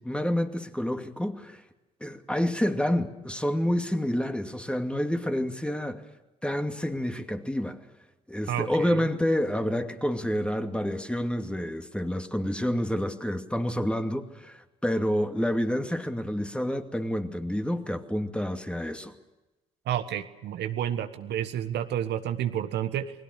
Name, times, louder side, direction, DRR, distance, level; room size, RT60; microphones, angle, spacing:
voice 1, 0.0-1.6 2.0-6.0 6.4-7.8 8.3-19.1, equal, 5° left, 2.5 m, -28 dB
voice 2, 8.5-9.0 19.9-23.1, right 10 dB, 65° right, 1.4 m, -30 dB
29.5 x 20.5 x 6.7 m
hypercardioid pair, 50°, 19 cm